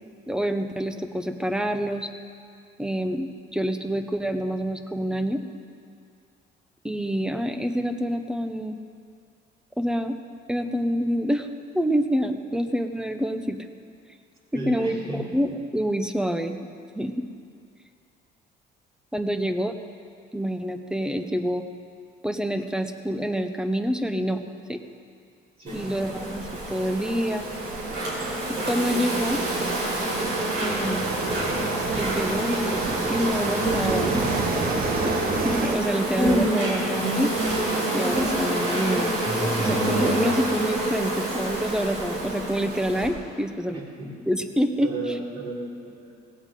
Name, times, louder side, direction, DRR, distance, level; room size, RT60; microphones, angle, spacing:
voice 1, 0.3-2.1 2.8-5.4 6.8-8.8 9.8-10.1 10.5-11.5 11.7-13.6 14.5-16.6 16.9-17.2 19.1-19.8 20.3-21.6 22.2-24.4 24.7-24.8 25.7-27.5 28.7-29.4 30.6-31.1 32.0-34.3 35.0-35.1 35.4-37.3 37.9-39.1 39.6-43.8 44.3-45.2, equal, 5° right, 7 dB, 0.9 m, -27 dB
voice 2, 14.5-15.2 25.6-25.9 43.7-44.1 44.8-46.1, right 2 dB, 30° right, -5 dB, 4.3 m, -34 dB
Insect, 25.7-43.1, right 1 dB, 70° right, 5.0 m, -27 dB
sound 1, 25.8-35.8, right 4 dB, 50° right, 1.2 m, -33 dB
18.0 x 16.5 x 3.8 m, 2.3 s
cardioid pair, 125°, 18 cm